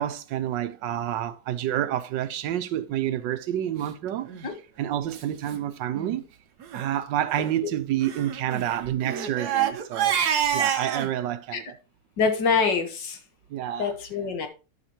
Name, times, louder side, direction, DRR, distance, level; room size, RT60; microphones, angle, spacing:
voice 1, 0.0-6.2 6.7-10.2 10.5-11.8 13.5-13.9, right 11 dB, 85° right, 1.4 m, -29 dB
Crying sobbing, 4.2-4.5 5.1-5.2 5.5-5.6 5.9-6.2 6.6-6.9 8.0-11.1, right 9 dB, 65° right, 1.5 m, -27 dB
voice 2, 12.2-13.2 13.8-14.5, left 5 dB, 80° left, 2.0 m, -25 dB
12.5 x 5.8 x 2.9 m
omnidirectional pair, 1.9 m